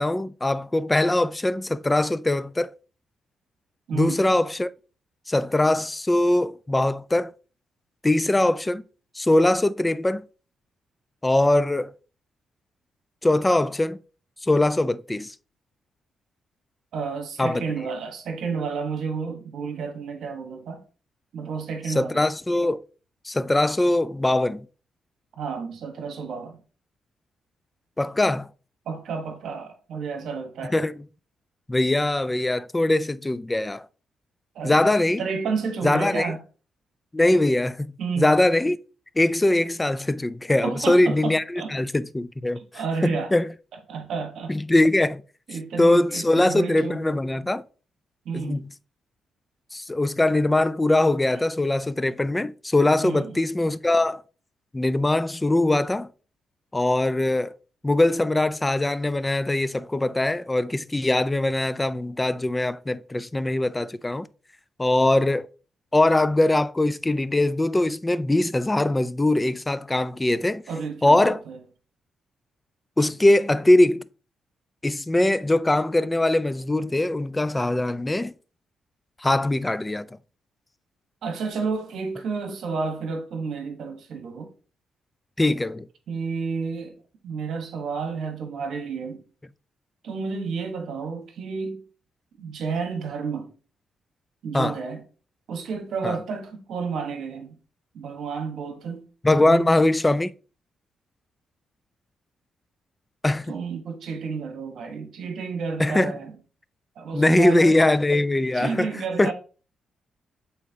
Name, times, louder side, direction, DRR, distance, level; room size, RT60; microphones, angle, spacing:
voice 1, 0.0-2.7 3.9-4.7 5.3-7.3 8.0-8.8 9.2-10.2 11.2-11.9 13.2-14.0 14.4-15.3 17.4-17.6 22.0-22.8 23.3-24.7 28.0-28.5 30.7-30.9 31.7-33.9 34.6-35.2 35.8-36.3 37.1-38.8 39.2-43.5 44.5-45.2 45.8-47.6 48.3-48.7 49.7-54.2 54.7-56.1 56.7-57.5 57.8-64.3 64.8-65.5 65.9-70.6 71.0-71.4 73.0-74.1 74.8-78.3 79.2-80.1 85.4-85.9 94.5-94.8 96.0-96.2 99.2-100.3 103.2-103.5 105.8-106.1 107.1-108.9 109.2-109.3, left 2 dB, 15° left, 0.3 m, -22 dB
voice 2, 3.9-4.2 16.9-20.8 21.3-22.2 25.4-26.6 28.9-30.7 34.5-36.4 38.0-38.3 40.6-41.7 42.7-43.3 43.9-44.5 45.5-47.0 48.2-48.6 53.0-53.4 70.7-71.6 81.2-84.5 86.1-87.0 87.2-89.2 90.0-91.8 92.4-93.5 94.4-95.0 95.5-97.6 97.9-99.1 99.4-99.7 103.5-106.3 107.0-107.8 108.5-109.3, right 5 dB, 75° right, 1.1 m, -31 dB
8.2 x 4.1 x 2.7 m
cardioid pair, 80°, 0 cm